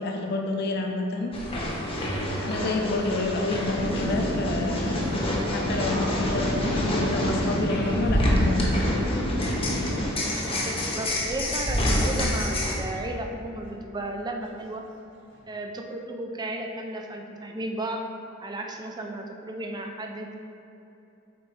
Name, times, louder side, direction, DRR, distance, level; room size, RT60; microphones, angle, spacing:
voice 1, 0.0-1.3 2.1-5.0 5.5-9.2, left 2 dB, 50° left, 2 dB, 0.6 m, -29 dB
sound 1, 1.3-12.7, left 1 dB, 25° left, 0.9 m, -28 dB
sound 2, 3.7-10.1, left 1 dB, 85° left, 0.8 m, -29 dB
sound 3, 3.8-6.8 7.7-7.9 8.2-10.4 11.7-12.9 13.6-15.6, equal, 55° right, 0.7 m, -43 dB
voice 2, 10.6-14.8 15.5-18.0 18.4-20.4, right 1 dB, 20° right, 2 dB, 0.4 m, -34 dB
6.8 x 4.5 x 3.2 m, 2.9 s
head